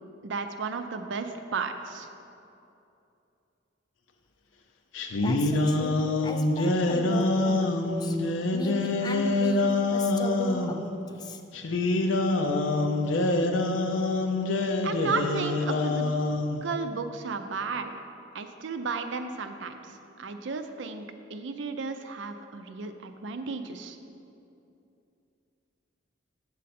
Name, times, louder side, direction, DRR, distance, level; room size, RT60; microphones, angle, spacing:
voice 1, 0.2-2.1 14.8-16.1 16.6-17.9 18.3-24.0, right 4 dB, 70° right, 7 dB, 0.5 m, -34 dB
sound 1, 4.9-10.7 11.5-16.6, left 2 dB, 80° left, 0.6 m, -26 dB
voice 2, 5.2-8.2 8.5-11.4, left 1 dB, 20° left, 6 dB, 0.4 m, -37 dB
8.2 x 6.4 x 4.2 m, 2.7 s
head